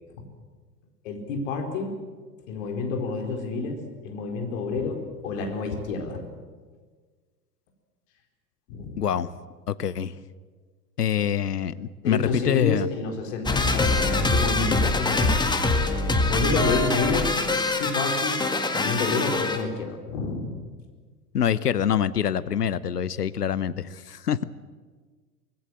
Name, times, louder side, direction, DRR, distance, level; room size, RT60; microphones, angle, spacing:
voice 1, 1.0-1.9 2.5-6.2 8.7-9.0 12.0-15.8 16.3-17.3 17.8-18.4 18.7-20.5, left 4 dB, 55° left, 3 dB, 4.5 m, -29 dB
voice 2, 9.0-9.3 9.7-10.2 11.0-12.9 21.3-24.4, left 9 dB, 75° left, 16 dB, 1.0 m, -25 dB
sound 1, 13.5-19.6, left 2 dB, 10° left, 1.9 m, -24 dB
25.0 x 19.5 x 7.7 m, 1.5 s
figure-of-eight pair, 90°, 47 cm